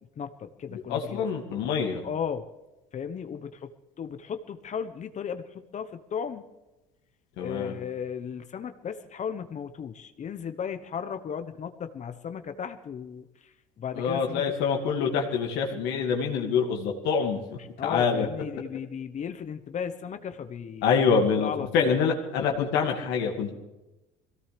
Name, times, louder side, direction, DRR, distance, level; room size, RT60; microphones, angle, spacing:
voice 1, 0.2-1.2 2.0-2.4 2.9-3.7 4.0-6.5 7.4-13.2 13.8-14.4 17.8-20.9 21.4-21.9, left 7 dB, 40° left, 9 dB, 1.1 m, -35 dB
voice 2, 0.7-2.0 7.4-7.7 13.9-17.4 17.8-18.3 20.8-23.5, left 6 dB, 70° left, 1 dB, 2.2 m, -26 dB
22.5 x 17.0 x 3.4 m, 1.0 s
hypercardioid pair, 75°, 19 cm